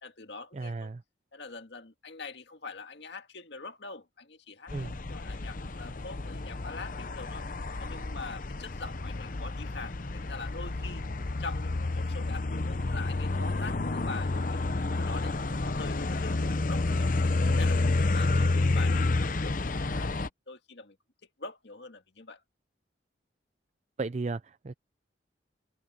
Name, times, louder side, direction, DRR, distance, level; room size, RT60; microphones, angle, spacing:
voice 1, 0.0-0.9 1.3-7.5 7.8-11.1 11.4-17.1 17.6-21.0 21.4-22.4, left 3 dB, 65° left, 2.0 m, -44 dB
voice 2, 0.5-1.0 4.7-4.9 18.2-18.3 24.0-24.7, right 3 dB, 35° right, 0.4 m, -35 dB
sound 1, 4.7-20.3, left 2 dB, 45° left, 0.8 m, -30 dB
head